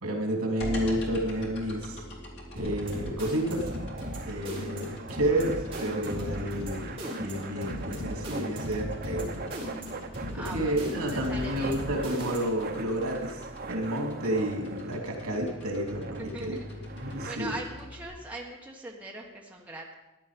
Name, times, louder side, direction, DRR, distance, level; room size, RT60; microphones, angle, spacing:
voice 1, 0.0-2.0 2.5-3.7 4.2-9.5 10.3-16.6 17.0-17.6, right 1 dB, 80° right, 2 dB, 2.9 m, -30 dB
sound 1, 0.6-18.1, equal, 50° left, 2.6 m, -44 dB
sound 2, 2.6-12.7, equal, 25° right, 4.3 m, -37 dB
sound 3, 2.7-17.4, right 4 dB, 45° right, 0.9 m, -42 dB
voice 2, 10.3-11.8 16.2-16.7 17.3-19.9, right 1 dB, 5° right, -2 dB, 1.2 m, -41 dB
14.5 x 10.5 x 5.2 m, 1.0 s
head